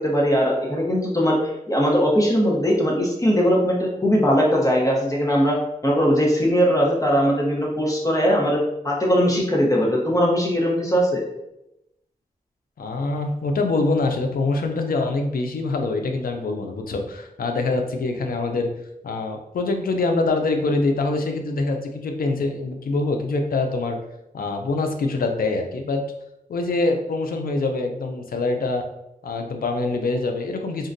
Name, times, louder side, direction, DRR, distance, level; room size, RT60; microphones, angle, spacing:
voice 1, 0.0-1.4 1.7-5.6 5.8-8.6 8.8-11.2, equal, 20° left, -3 dB, 0.8 m, -20 dB
voice 2, 12.8-18.7 19.0-24.0 24.3-26.0 26.5-28.9 29.2-30.9, left 3 dB, 80° left, 4 dB, 0.4 m, -24 dB
3.7 x 2.1 x 2.5 m, 0.85 s
cardioid pair, 60°, 15 cm